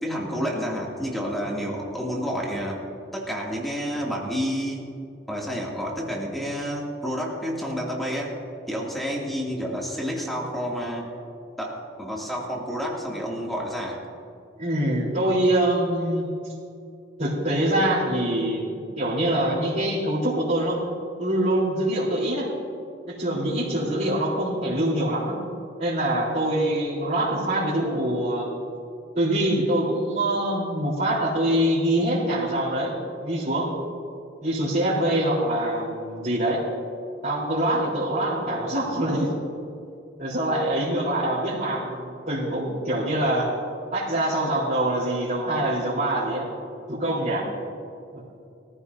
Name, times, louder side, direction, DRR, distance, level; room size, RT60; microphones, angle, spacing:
voice 1, 0.0-2.8 3.1-4.9 5.3-8.3 8.7-11.1 11.6-14.0, equal, ahead, -4 dB, 2.6 m, -29 dB
voice 2, 14.6-16.3 17.2-20.8 21.2-22.5 23.1-25.4 25.8-28.4 29.2-32.9 33.2-33.7 34.4-36.6 37.2-39.3 40.2-43.5 43.9-46.5 46.9-47.5 48.1-48.2, right 1 dB, 45° right, -10 dB, 4.0 m, -24 dB
23.0 x 14.5 x 2.8 m, 2.4 s
head